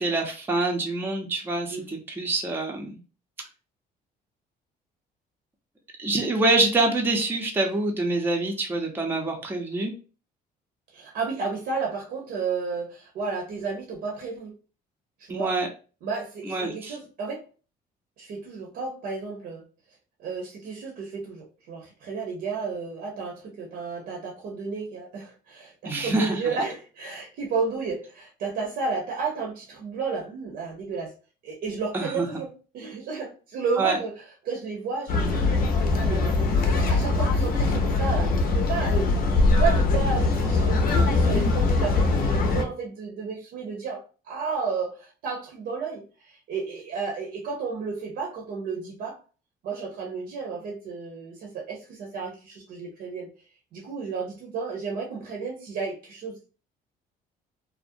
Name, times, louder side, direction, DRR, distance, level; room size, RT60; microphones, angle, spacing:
voice 1, 0.0-3.0 6.0-9.9 15.3-15.7 16.4-17.0 25.8-26.6 31.9-32.4 33.8-34.0, right 2 dB, 15° right, 1 dB, 0.5 m, -26 dB
voice 2, 10.9-14.5 15.2-15.5 16.0-17.4 18.2-19.6 20.2-31.1 31.4-34.1 34.4-35.6 35.9-49.2 49.6-53.3 53.7-56.4, right 4 dB, 65° right, -1 dB, 0.7 m, -32 dB
sound 1, 35.1-42.6, left 3 dB, 60° left, 0.6 m, -22 dB
2.4 x 2.0 x 2.5 m, 0.35 s
cardioid pair, 110°, 17 cm